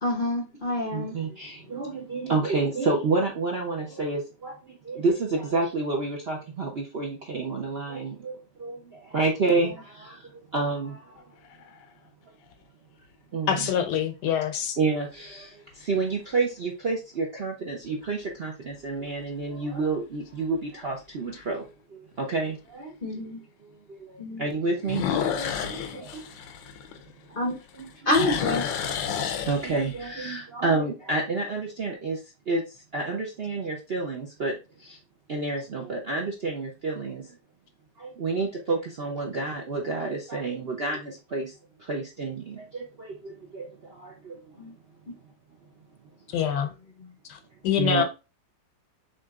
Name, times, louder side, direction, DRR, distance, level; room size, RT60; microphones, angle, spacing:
voice 1, 0.0-1.2 23.0-23.4 24.2-24.4 27.4-27.5 28.1-28.6 44.6-44.7, left 1 dB, 45° left, 0.7 m, -27 dB
voice 2, 0.9-11.3 13.3-13.7 14.8-23.0 23.9-26.3 27.3-28.3 29.3-32.2 32.5-35.0 35.3-37.4 38.0-44.7 46.4-46.5 47.8-48.0, right 3 dB, 55° right, 0.7 m, -30 dB
sound 1, 11.2-11.9 12.5-12.6 17.8-18.3 18.8-18.9 19.4-19.5 19.8-19.9 21.4-21.5 24.8-27.4 27.7-30.1, left 8 dB, 85° left, 1.4 m, -30 dB
voice 3, 13.5-14.8 46.3-46.7 47.3-47.4 47.6-48.0, left 8 dB, 70° left, 1.2 m, -25 dB
6.5 x 3.0 x 2.4 m
omnidirectional pair, 2.0 m